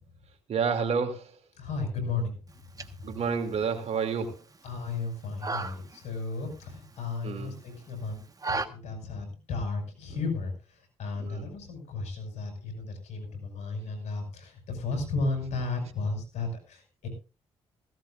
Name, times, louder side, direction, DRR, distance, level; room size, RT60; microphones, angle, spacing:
voice 1, 0.5-1.3 3.0-4.4 7.2-7.6 10.1-10.2 11.2-11.4, right 6 dB, 65° right, 6 dB, 2.7 m, -29 dB
voice 2, 1.6-2.3 4.6-10.5 11.0-17.1, left 3 dB, 75° left, 4 dB, 5.7 m, -34 dB
sound 1, 2.5-8.7, right 3 dB, 30° right, 1.4 m, -39 dB
17.0 x 15.5 x 2.5 m, 0.31 s
supercardioid pair, 60°, 12 cm